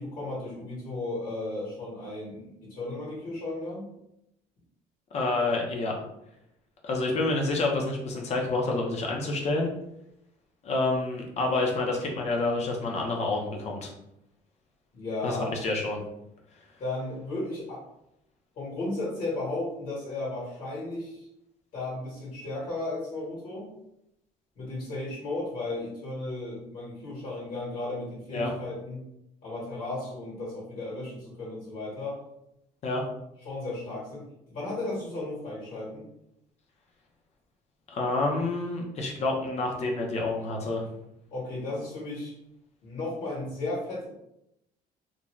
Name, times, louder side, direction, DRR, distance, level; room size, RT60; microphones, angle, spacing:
voice 1, 0.0-3.8 14.9-15.5 16.8-17.8 18.5-21.3 21.7-23.7 24.5-29.0 29.4-32.2 33.4-36.0 41.3-42.3 42.8-44.1, left 2 dB, 60° left, -7 dB, 1.3 m, -34 dB
voice 2, 5.1-6.0 6.8-9.7 10.6-13.9 15.2-16.0 28.3-28.5 32.8-33.0 37.9-40.8, left 2 dB, 45° left, 1 dB, 0.6 m, -28 dB
2.5 x 2.2 x 3.1 m, 0.82 s
cardioid pair, 140°, 16 cm